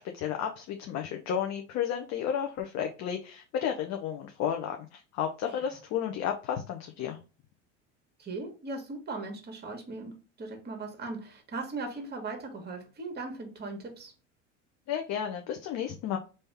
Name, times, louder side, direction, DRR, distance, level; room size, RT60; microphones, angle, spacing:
voice 1, 0.0-7.2 14.9-16.2, left 8 dB, 45° left, 0.7 m, -32 dB
voice 2, 5.5-5.8 8.2-14.1, right 3 dB, 25° right, 1.5 m, -39 dB
3.5 x 2.7 x 3.3 m
hypercardioid pair, 85°, 36 cm